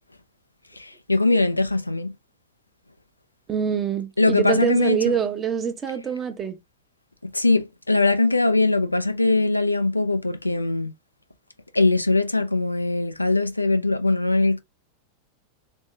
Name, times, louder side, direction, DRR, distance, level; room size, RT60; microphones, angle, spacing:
voice 1, 0.8-2.1 4.2-5.1 7.2-10.9 11.7-14.6, left 2 dB, 85° left, 0.4 m, -21 dB
voice 2, 3.5-6.6, right 7 dB, 20° right, 0.8 m, -25 dB
3.6 x 2.7 x 3.2 m
figure-of-eight pair, 90°, 0 cm